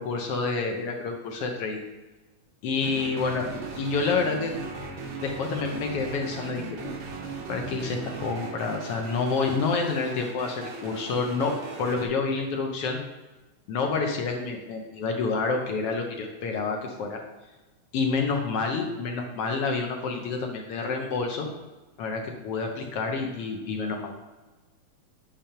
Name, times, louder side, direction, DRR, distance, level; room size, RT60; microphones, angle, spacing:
voice 1, 0.0-1.8 2.6-3.5 3.8-4.5 5.2-6.9 7.5-11.5 11.8-13.0 13.7-17.2 17.9-21.5 22.0-24.1, left 4 dB, 65° left, 2 dB, 1.6 m, -28 dB
sound 1, 2.8-12.1, right 4 dB, 70° right, 1.1 m, -38 dB
9.0 x 3.5 x 5.7 m, 1.2 s
omnidirectional pair, 3.4 m